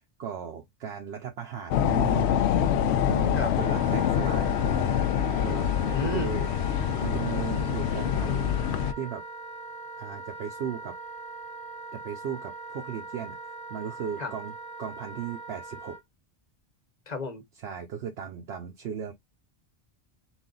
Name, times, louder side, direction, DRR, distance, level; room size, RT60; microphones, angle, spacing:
voice 1, 0.2-2.4 3.1-5.0 5.4-5.7 6.0-6.5 7.0-8.7 9.0-9.2 10.0-10.9 11.9-13.4 13.7-16.0 17.6-19.1, right 8 dB, 70° right, 0.9 m, -36 dB
sound 1, 1.7-8.9, left 9 dB, 75° left, 0.8 m, -25 dB
Wind instrument woodwind instrument, 3.5-16.0, right 3 dB, 40° right, 0.9 m, -41 dB
voice 2, 5.8-6.3 14.2-14.3 17.1-17.4, left 3 dB, 40° left, 0.9 m, -32 dB
4.0 x 2.5 x 3.8 m
omnidirectional pair, 1.1 m